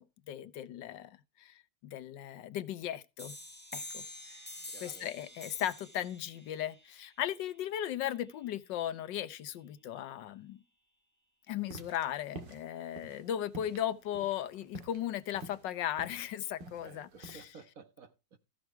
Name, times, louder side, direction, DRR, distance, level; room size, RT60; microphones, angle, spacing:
voice 1, 0.0-3.4 3.7-4.0 4.3-4.4 4.8-10.6 11.5-17.6, left 11 dB, 80° left, 1.5 m, -37 dB
sound 1, 3.2-8.6, left 1 dB, 5° left, 1.5 m, -48 dB
voice 2, 4.7-5.0 16.8-18.4, right 5 dB, 50° right, 1.6 m, -54 dB
sound 2, 11.6-17.5, right 2 dB, 85° right, 2.2 m, -49 dB
14.5 x 6.3 x 4.4 m
omnidirectional pair, 1.9 m